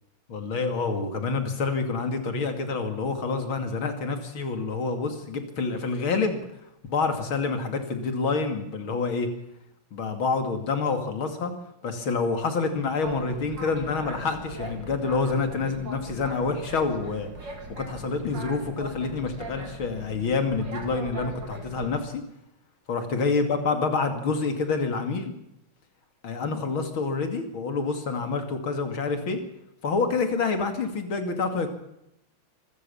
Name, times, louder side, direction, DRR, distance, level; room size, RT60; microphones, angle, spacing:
voice 1, 0.3-6.4 6.9-9.3 9.9-11.5 11.8-22.2 22.9-25.3 26.2-29.4 29.8-31.7, left 4 dB, 90° left, 7 dB, 3.3 m, -27 dB
Boat Water vehicle, 13.0-22.0, right 2 dB, 65° right, 3.7 m, -40 dB
25.5 x 14.5 x 7.1 m, 0.83 s
omnidirectional pair, 2.2 m